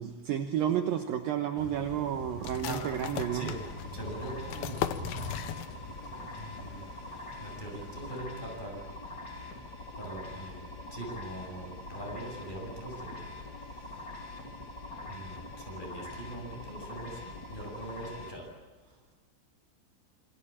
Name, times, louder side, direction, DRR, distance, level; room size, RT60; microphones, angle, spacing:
voice 1, 0.0-3.5, right 10 dB, 75° right, 5 dB, 2.1 m, -31 dB
Thunder / Rain, 1.5-8.2, left 1 dB, 10° right, 7.1 m, -45 dB
sound 1, 2.4-6.1 6.3-6.4 6.9-7.3, left 11 dB, 80° left, 2.1 m, -38 dB
sound 2, 2.7-18.3, left 2 dB, 25° left, 2.8 m, -44 dB
voice 2, 3.9-4.9 6.4-6.9 7.4-8.8 10.0-10.6 10.9-13.3 15.1-18.5, right 1 dB, 10° left, 0 dB, 7.4 m, -41 dB
27.5 x 24.0 x 8.7 m, 1.2 s
omnidirectional pair, 5.7 m